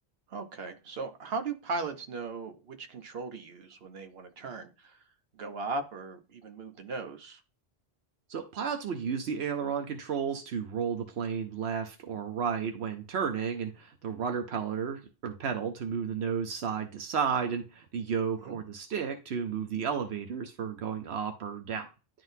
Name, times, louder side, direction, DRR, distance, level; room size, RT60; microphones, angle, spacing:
voice 1, 0.3-5.0 5.4-7.4 18.4-18.6, right 3 dB, 70° right, 7 dB, 1.2 m, -38 dB
voice 2, 8.3-21.9, right 7 dB, 90° right, 6 dB, 1.0 m, -32 dB
11.0 x 3.9 x 2.7 m, 0.30 s
omnidirectional pair, 1.1 m